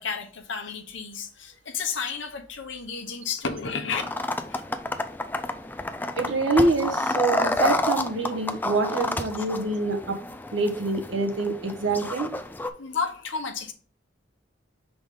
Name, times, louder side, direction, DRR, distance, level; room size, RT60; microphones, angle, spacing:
voice 1, 0.0-4.1 4.5-4.6 12.8-13.7, left 5 dB, 70° left, 0.9 m, -32 dB
sound 1, 3.9-12.7, left 2 dB, 10° left, 0.4 m, -30 dB
voice 2, 6.2-10.2 10.5-12.3, right 3 dB, 75° right, 1.2 m, -25 dB
5.0 x 3.9 x 5.3 m
head